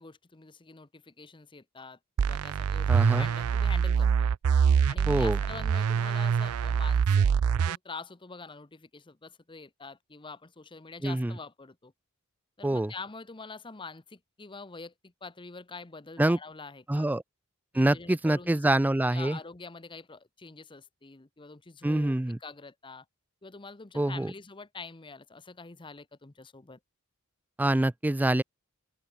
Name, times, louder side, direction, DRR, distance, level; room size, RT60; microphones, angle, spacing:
voice 1, 0.0-4.3 4.9-7.3 7.6-11.9 12.6-17.1 17.7-18.6 19.1-22.1 22.4-23.0 23.4-26.8, left 4 dB, 20° left, 0.8 m, -45 dB
sound 1, 2.2-7.8, right 7 dB, 85° right, 0.4 m, -25 dB
voice 2, 2.9-3.3 5.1-5.4 11.0-11.3 12.6-12.9 16.2-16.4 16.9-17.2 17.7-19.4 21.8-22.4 23.9-24.3 27.6-28.4, right 1 dB, 10° right, 0.3 m, -25 dB
open air
head